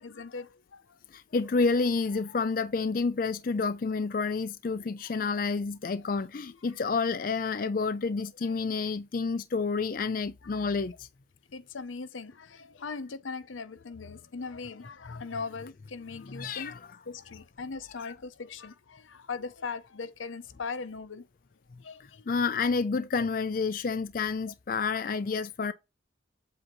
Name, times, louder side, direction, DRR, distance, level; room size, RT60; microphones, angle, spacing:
voice 1, 0.0-1.0 4.7-5.1 8.4-8.5 10.4-10.6 11.5-16.7 17.1-21.3 21.8-22.7 23.2-23.3 24.9-25.1, left 4 dB, 85° left, 0.7 m, -40 dB
voice 2, 1.1-11.1 15.1-15.2 16.2-17.0 18.0-18.1 22.0-25.7, left 4 dB, 45° left, 0.4 m, -29 dB
7.8 x 2.8 x 5.9 m
head